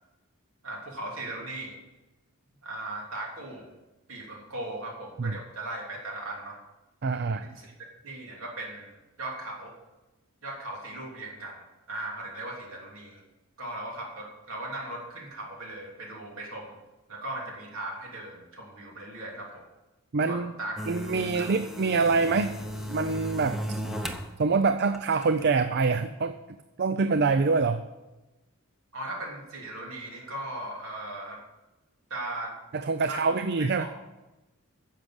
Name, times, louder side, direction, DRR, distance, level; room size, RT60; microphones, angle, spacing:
voice 1, 0.6-1.8 2.6-3.7 4.1-6.6 7.4-7.7 8.0-9.8 10.4-13.2 13.6-16.8 17.1-19.7 20.3-20.8 21.3-21.5 28.9-31.4 32.1-32.5 33.0-33.9, right 1 dB, 65° right, -1 dB, 3.1 m, -38 dB
voice 2, 7.0-7.5 20.1-20.5 20.9-22.6 22.9-23.6 24.4-26.4 26.8-27.8 32.7-33.9, right 4 dB, 45° right, 10 dB, 0.5 m, -25 dB
sound 1, 20.8-24.3 24.7-25.4, equal, ahead, 0.8 m, -36 dB
10.0 x 7.3 x 7.9 m, 1.0 s
head